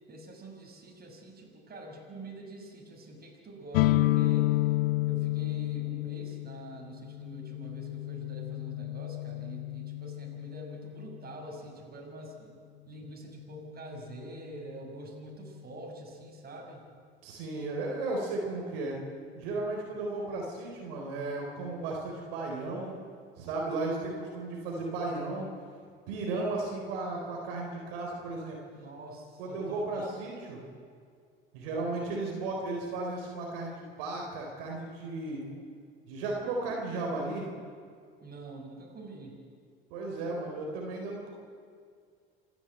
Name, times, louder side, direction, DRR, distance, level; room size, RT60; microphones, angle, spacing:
voice 1, 0.1-4.6 5.1-12.6 12.9-16.8 28.7-30.1 38.2-39.4, right 2 dB, 30° right, 0 dB, 6.4 m, -46 dB
sound 1, 3.7-11.4, left 17 dB, 70° left, 0.9 m, -30 dB
voice 2, 17.2-19.0 19.3-23.0 23.4-25.5 26.1-28.6 29.4-30.6 31.5-35.4 36.1-37.5 39.9-41.3, right 2 dB, 70° right, 0 dB, 4.2 m, -35 dB
27.0 x 11.5 x 9.2 m, 2.1 s
hypercardioid pair, 70°, 29 cm